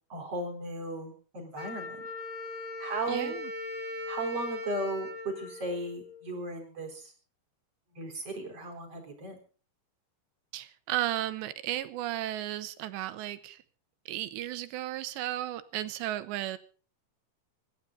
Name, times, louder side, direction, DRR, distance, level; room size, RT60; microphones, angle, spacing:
voice 1, 0.1-2.1 2.8-3.3 4.1-7.1 7.9-9.4, right 2 dB, 35° right, 3 dB, 4.7 m, -36 dB
Wind instrument woodwind instrument, 1.6-6.4, left 3 dB, 35° left, 2.8 m, -39 dB
voice 2, 3.1-3.5 10.5-13.6 14.1-16.6, right 14 dB, 80° right, 13 dB, 3.3 m, -34 dB
26.0 x 12.0 x 3.9 m, 0.39 s
omnidirectional pair, 5.1 m